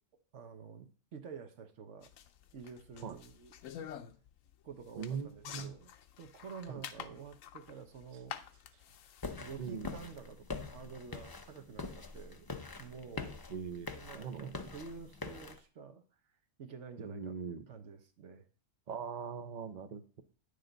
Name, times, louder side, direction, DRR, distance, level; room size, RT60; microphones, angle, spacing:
voice 1, 0.3-2.1 2.5-3.5 4.6-5.9 6.2-8.4 9.4-12.5 12.8-13.4 14.0-16.0 16.6-18.5, right 6 dB, 65° right, 8 dB, 1.2 m, -49 dB
sound 1, 2.0-9.7, left 9 dB, 85° left, 1.0 m, -49 dB
voice 2, 5.0-5.7 6.7-7.1 9.6-10.0 13.5-14.5 17.0-17.7 18.9-20.2, right 6 dB, 40° right, 8 dB, 0.7 m, -41 dB
sound 2, 9.2-15.6, left 4 dB, 30° left, 0.4 m, -44 dB
9.5 x 6.6 x 3.9 m, 0.40 s
omnidirectional pair, 1.3 m